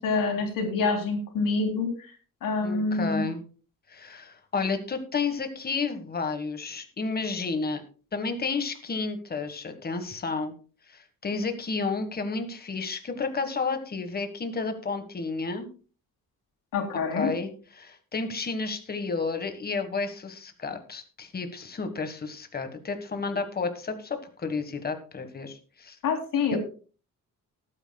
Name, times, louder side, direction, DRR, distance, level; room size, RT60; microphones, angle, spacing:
voice 1, 0.0-2.1 2.4-3.2 16.7-17.3 26.0-26.6, left 4 dB, 75° left, 2 dB, 3.3 m, -26 dB
voice 2, 2.6-3.4 3.9-7.8 8.1-10.5 10.9-15.7 17.1-17.5 17.8-26.0 26.5-26.6, left 4 dB, 30° left, 8 dB, 1.5 m, -31 dB
19.5 x 9.0 x 2.3 m, 0.37 s
cardioid pair, 160°, 33 cm